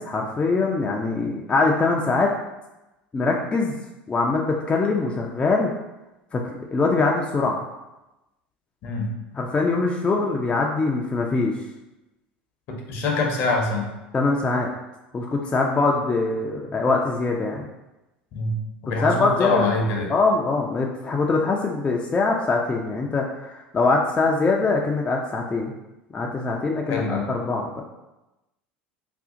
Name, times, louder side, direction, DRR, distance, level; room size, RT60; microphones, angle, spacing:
voice 1, 0.0-2.3 3.1-3.8 4.1-5.7 6.3-7.6 9.3-11.5 14.1-14.7 15.1-17.6 19.0-19.7 20.1-25.7 26.1-27.8, left 3 dB, 20° left, -1 dB, 0.4 m, -23 dB
voice 2, 12.9-13.9 18.3-20.1 26.9-27.3, left 2 dB, 55° left, 1 dB, 0.8 m, -24 dB
2.5 x 2.4 x 3.7 m, 0.98 s
hypercardioid pair, 75°, 5 cm